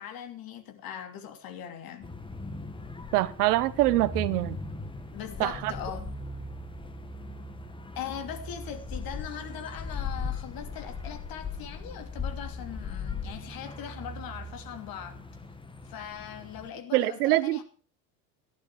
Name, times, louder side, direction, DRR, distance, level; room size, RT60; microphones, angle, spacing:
voice 1, 0.0-2.1 5.1-6.1 7.9-15.3 15.8-17.6, left 9 dB, 45° left, 2.9 m, -40 dB
sound 1, 2.0-16.7, left 3 dB, 10° left, 1.5 m, -38 dB
voice 2, 3.1-4.6 5.4-5.7 16.9-17.6, right 17 dB, 65° right, 1.0 m, -24 dB
14.0 x 11.0 x 4.7 m
hypercardioid pair, 90°, 49 cm